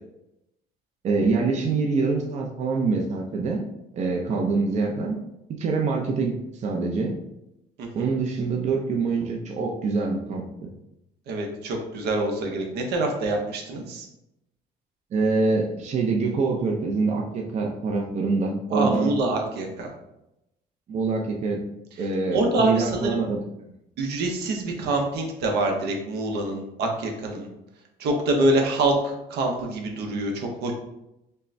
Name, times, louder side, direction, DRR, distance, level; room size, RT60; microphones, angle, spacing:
voice 1, 1.0-3.6 3.9-5.2 5.5-7.2 7.9-10.7 15.1-19.1 20.9-21.7 22.0-23.4, right 4 dB, 45° right, 1 dB, 0.6 m, -25 dB
voice 2, 11.3-14.1 18.7-19.9 22.3-23.2 24.0-27.5 28.0-30.7, right 2 dB, 75° right, 2 dB, 0.8 m, -25 dB
5.4 x 2.1 x 2.6 m, 0.87 s
cardioid pair, 110°, 17 cm